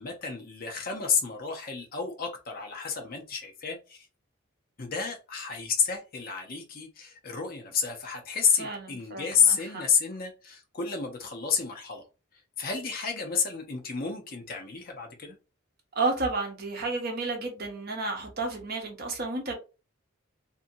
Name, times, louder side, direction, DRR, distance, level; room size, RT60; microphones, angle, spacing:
voice 1, 0.0-4.1 4.8-12.0 12.6-15.4, left 6 dB, 45° left, 0.6 m, -30 dB
voice 2, 8.6-9.8 15.9-19.5, right 3 dB, 45° right, 0.8 m, -32 dB
2.6 x 2.6 x 2.6 m
head